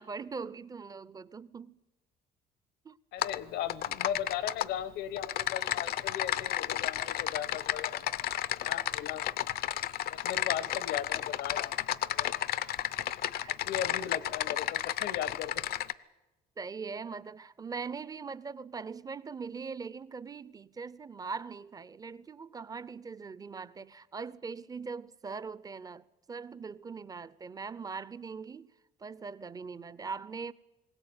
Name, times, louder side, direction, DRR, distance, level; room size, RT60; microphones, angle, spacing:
voice 1, 0.0-1.8 2.8-3.0 13.4-13.6 16.6-28.7 29.0-30.5, right 5 dB, 20° right, 0.6 m, -41 dB
voice 2, 3.1-8.1 8.6-9.5 10.1-11.8 12.1-12.4 13.5-15.5, left 10 dB, 85° left, 1.2 m, -37 dB
Typing, 3.2-3.4 3.7-4.7 5.2-15.9, left 12 dB, 65° left, 0.7 m, -32 dB
20.5 x 17.0 x 8.8 m
cardioid pair, 110°, 17 cm